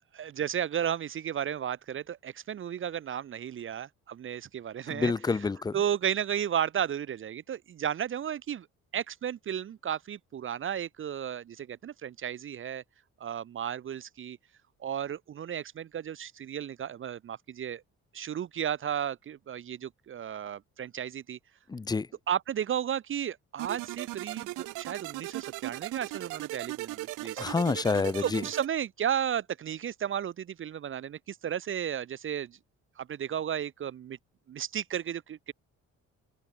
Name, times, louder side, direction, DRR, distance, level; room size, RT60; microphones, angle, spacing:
voice 1, 0.1-8.7 8.9-12.8 13.2-14.4 14.8-17.8 18.1-21.4 22.3-27.4 28.2-32.6 33.0-34.2 34.5-35.5, right 9 dB, 45° right, 0.6 m, -34 dB
voice 2, 4.9-5.8 21.7-22.1 27.4-28.4, left 4 dB, 15° left, 0.4 m, -28 dB
sound 1, 23.6-28.7, right 20 dB, 85° right, 0.5 m, -38 dB
cardioid pair, 90°, 30 cm